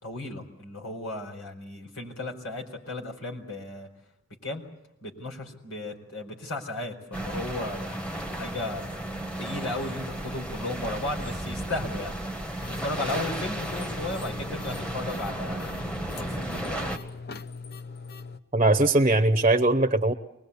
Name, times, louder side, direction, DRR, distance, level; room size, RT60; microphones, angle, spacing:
voice 1, 0.0-3.9 4.4-4.6 5.0-9.0 9.4-12.2 12.8-15.7 16.2-16.9, left 2 dB, 90° left, 2 dB, 4.6 m, -35 dB
sound 1, 7.1-17.0, right 1 dB, 5° left, 1.4 m, -34 dB
sound 2, 12.6-18.4, left 4 dB, 50° left, 0.8 m, -41 dB
voice 2, 18.5-20.1, right 2 dB, 30° right, 9 dB, 0.8 m, -20 dB
24.5 x 20.5 x 8.4 m, 0.87 s
head